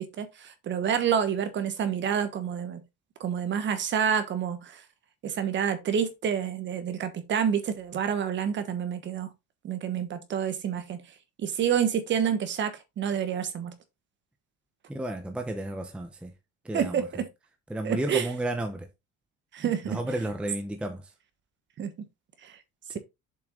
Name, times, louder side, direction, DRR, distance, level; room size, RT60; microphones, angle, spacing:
voice 1, 0.0-2.8 3.2-4.8 5.2-9.3 9.6-11.0 11.4-13.7 16.7-17.3 17.8-18.3 19.5-20.0 21.8-21.9 22.4-22.6, right 8 dB, 35° right, 1.3 m, -28 dB
voice 2, 14.9-16.3 16.6-17.1 17.7-18.9 19.9-21.0, right 1 dB, 5° right, 0.8 m, -32 dB
7.3 x 5.6 x 3.7 m
cardioid pair, 170°, 34 cm